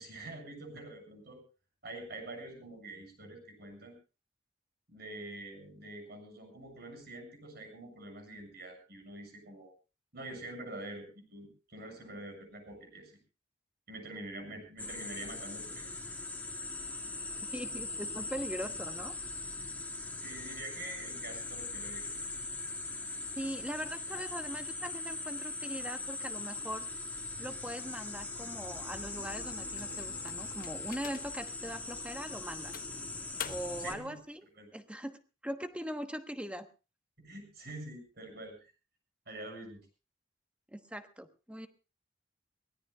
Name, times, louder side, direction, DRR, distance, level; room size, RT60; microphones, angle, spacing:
voice 1, 0.0-1.4 1.8-4.0 4.9-9.7 10.1-13.2 13.9-15.9 20.2-22.1 33.8-34.2 34.5-34.7 37.2-38.7 39.3-39.9, right 2 dB, 55° right, 4 dB, 7.0 m, -46 dB
sound 1, 14.8-34.0, left 3 dB, 10° left, 1.8 m, -40 dB
voice 2, 17.5-19.2 23.3-26.9 27.4-32.8 33.4-34.4 34.7-36.7 40.7-41.7, equal, 5° right, 7 dB, 1.1 m, -41 dB
sound 2, 28.3-34.2, right 1 dB, 75° right, 2.4 m, -55 dB
sound 3, 29.8-31.5 32.0-32.2 32.7-33.9, left 8 dB, 45° left, 1.0 m, -45 dB
23.5 x 17.5 x 2.4 m, 0.32 s
head